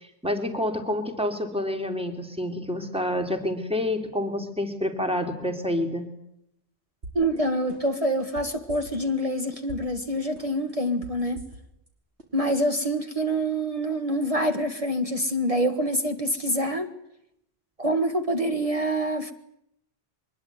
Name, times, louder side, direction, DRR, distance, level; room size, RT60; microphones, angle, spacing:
voice 1, 0.0-6.1, left 1 dB, 5° right, 3.2 m, -28 dB
sound 1, 7.0-7.4 7.7-9.2 9.5-10.0 10.4-11.9 12.2-12.3, right 2 dB, 85° right, 5.4 m, -42 dB
voice 2, 7.2-11.4 12.3-16.9 17.8-19.3, right 1 dB, 30° right, 1.8 m, -26 dB
23.5 x 21.5 x 9.4 m
omnidirectional pair, 1.1 m